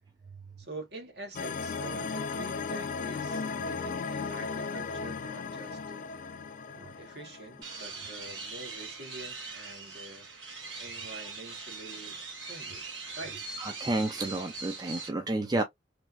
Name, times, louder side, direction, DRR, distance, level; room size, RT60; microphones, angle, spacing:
voice 1, 0.6-6.1 6.7-10.3 10.8-12.8 13.2-13.4, right 2 dB, 60° right, 1.2 m, -46 dB
sound 1, 1.3-8.4, left 4 dB, 45° left, 0.4 m, -36 dB
sound 2, 7.6-15.1, right 4 dB, 85° right, 1.2 m, -41 dB
voice 2, 13.6-15.6, right 2 dB, 20° right, 0.4 m, -30 dB
3.2 x 2.4 x 2.6 m
head